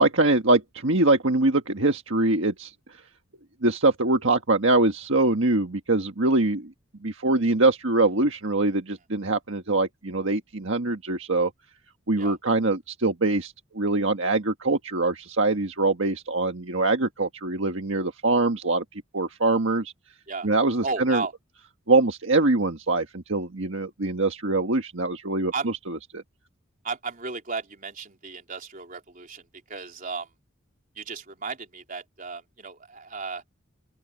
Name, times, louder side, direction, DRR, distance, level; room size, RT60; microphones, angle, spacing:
voice 1, 0.0-2.7 3.6-6.7 7.0-11.5 12.1-18.8 19.1-19.9 20.4-21.2 21.9-25.5 25.9-26.2, right 2 dB, 65° right, 1.6 m, -23 dB
voice 2, 20.8-21.3 23.7-23.9 25.5-25.7 26.8-30.3 31.0-33.4, right 4 dB, 40° right, 3.8 m, -34 dB
open air
head